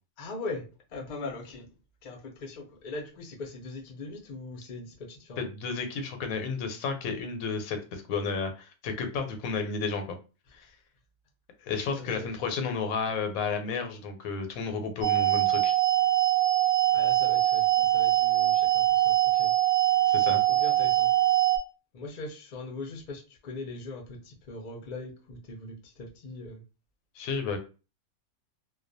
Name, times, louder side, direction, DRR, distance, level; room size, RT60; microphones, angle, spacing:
voice 1, 0.2-1.7 2.0-5.4 12.0-12.3 16.9-19.5 20.5-21.1 21.9-26.6, left 2 dB, 55° left, 1 dB, 0.5 m, -40 dB
voice 2, 5.4-10.2 10.5-10.7 11.6-15.7 20.1-20.4 27.2-27.6, left 4 dB, 85° left, 6 dB, 1.0 m, -32 dB
sound 1, 15.0-21.6, right 14 dB, 60° right, 0.8 m, -23 dB
2.3 x 2.2 x 2.5 m, 0.32 s
omnidirectional pair, 1.4 m